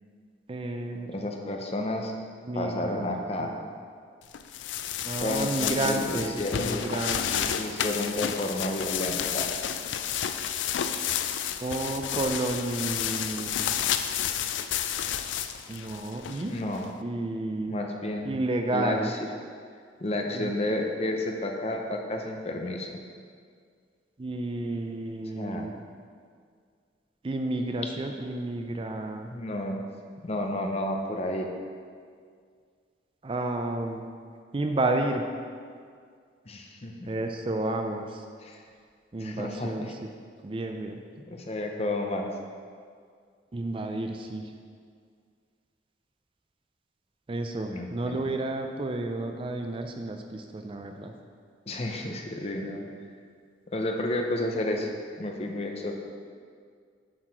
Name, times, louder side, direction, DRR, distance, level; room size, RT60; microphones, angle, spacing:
voice 1, 0.5-1.1 2.5-3.1 3.4-3.6 5.0-7.5 11.6-13.8 15.7-16.5 17.0-17.7 18.3-19.1 20.3-20.5 24.2-25.7 27.2-29.3 33.2-34.1 34.5-35.2 37.1-38.2 39.1-39.9 40.4-41.0 43.5-44.4 47.3-51.1, right 2 dB, 30° right, 5 dB, 0.4 m, -31 dB
voice 2, 1.1-2.1 2.5-3.5 5.2-6.8 7.6-9.5 16.5-16.9 17.7-18.3 18.7-19.2 20.0-22.9 25.4-25.7 29.3-29.8 30.2-31.5 36.5-36.9 38.4-38.6 39.2-39.9 41.3-42.3 47.7-48.3 51.7-52.9 53.7-54.9 55.2-55.9, left 1 dB, 35° left, 2 dB, 0.7 m, -31 dB
sound 1, 4.3-16.8, left 9 dB, 75° left, 0.4 m, -31 dB
7.4 x 4.7 x 5.8 m, 2.1 s
head